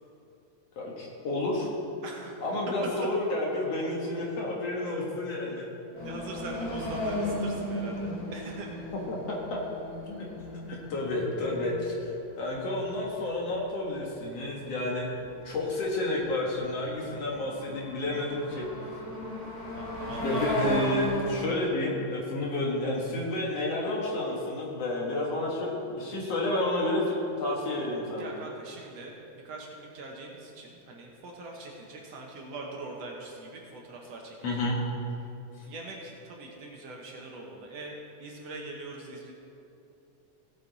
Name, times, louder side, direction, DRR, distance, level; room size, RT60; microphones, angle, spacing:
voice 1, 0.8-1.7 2.4-5.7 9.1-9.6 10.1-10.3 10.7-15.1 15.4-18.7 20.1-28.3 34.4-34.8, left 2 dB, 55° left, -2 dB, 2.4 m, -30 dB
voice 2, 2.0-2.4 2.8-2.9 4.8-5.1 5.5-5.7 6.0-8.7 19.8-20.5 21.6-21.7 28.2-29.2 29.4-34.7 35.6-39.3, right 2 dB, 65° right, -1 dB, 2.0 m, -42 dB
sound 1, 6.0-13.1 13.5-13.6 13.9-14.4 15.3-15.4 15.9-21.3, left 1 dB, 35° left, 2.1 m, -35 dB
16.5 x 8.6 x 4.0 m, 2.7 s
omnidirectional pair, 3.5 m